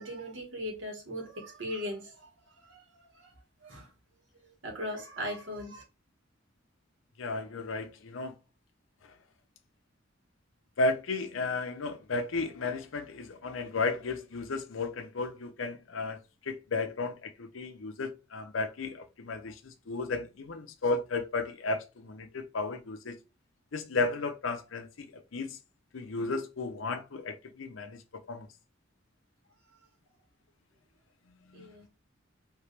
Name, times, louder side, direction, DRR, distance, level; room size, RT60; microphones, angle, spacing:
voice 1, 0.0-2.3 2.6-3.3 3.6-3.9 4.6-5.8 31.5-31.9, equal, 70° right, 1.7 m, -39 dB
voice 2, 7.2-8.4 10.8-16.2 16.5-23.2 23.7-25.6 25.9-28.0 28.3-28.5 31.5-31.7, left 3 dB, 80° left, 0.6 m, -34 dB
4.6 x 2.8 x 3.2 m
head